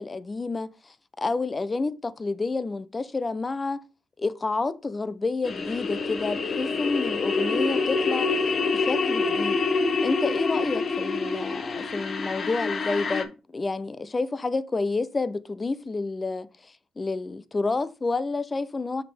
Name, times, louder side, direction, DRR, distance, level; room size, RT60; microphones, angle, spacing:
voice 1, 0.0-3.8 4.2-8.5 8.7-9.6 10.0-19.0, left 3 dB, 30° left, 0.5 m, -29 dB
sound 1, 5.4-13.2, left 4 dB, 50° left, 0.9 m, -26 dB
5.7 x 5.3 x 3.4 m
cardioid pair, 75°, 0 cm